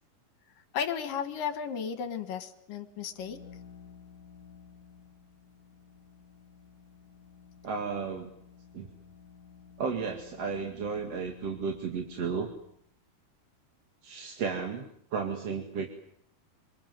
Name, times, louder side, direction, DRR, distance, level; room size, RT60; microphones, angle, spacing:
voice 1, 0.7-3.4, left 7 dB, 65° left, 8 dB, 3.4 m, -34 dB
sound 1, 2.9-12.8, left 6 dB, 50° left, 3.1 m, -54 dB
voice 2, 7.6-8.3 8.7-8.9 9.8-12.5 14.0-14.8 15.1-15.9, right 5 dB, 45° right, 3 dB, 3.0 m, -33 dB
27.5 x 26.0 x 7.9 m, 0.68 s
omnidirectional pair, 4.4 m